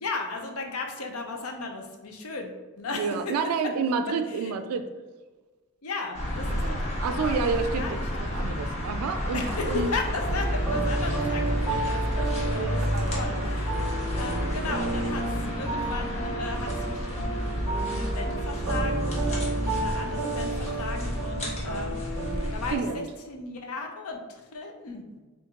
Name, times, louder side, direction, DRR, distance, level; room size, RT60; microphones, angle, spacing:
voice 1, 0.0-3.3 4.3-4.5 5.8-6.8 7.1-8.2 9.3-13.8 14.1-22.0 22.5-25.2, left 3 dB, 80° left, 3 dB, 0.6 m, -36 dB
voice 2, 3.0-4.9 6.5-9.9 12.5-13.2 22.7-23.1, right 5 dB, 85° right, 8 dB, 0.3 m, -30 dB
sound 1, 6.1-22.8, equal, 30° left, 1.0 m, -30 dB
sound 2, 10.2-22.4, right 3 dB, ahead, 1.0 m, -32 dB
4.4 x 2.5 x 3.6 m, 1.3 s
head